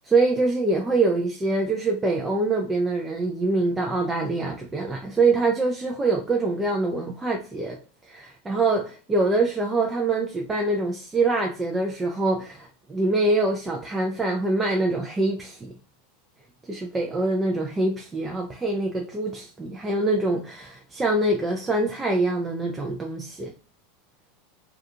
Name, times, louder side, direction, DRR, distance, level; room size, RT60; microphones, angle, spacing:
voice 1, 0.1-7.8 8.1-15.7 16.7-23.5, right 2 dB, 15° right, 0.4 m, -24 dB
2.4 x 2.3 x 2.7 m
hypercardioid pair, 105°, 0 cm